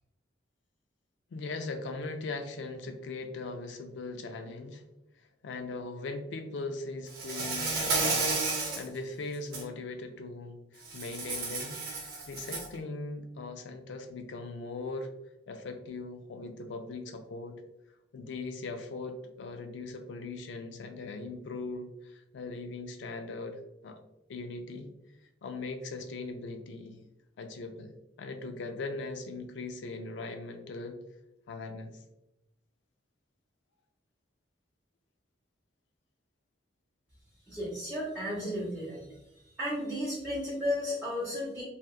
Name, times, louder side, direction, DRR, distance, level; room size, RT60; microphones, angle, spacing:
voice 1, 1.3-4.8 5.4-15.1 15.5-17.6 18.1-24.0 24.3-24.9 25.4-27.0 27.4-27.9 28.2-31.0 31.5-32.0, left 3 dB, 70° left, 6 dB, 0.4 m, -40 dB
Insect, 7.1-8.9 9.3-9.6 10.9-12.7, right 3 dB, 50° right, 0.7 m, -32 dB
voice 2, 37.5-39.1 39.6-41.6, left 1 dB, 10° right, -9 dB, 0.6 m, -33 dB
2.8 x 2.3 x 2.3 m, 0.89 s
head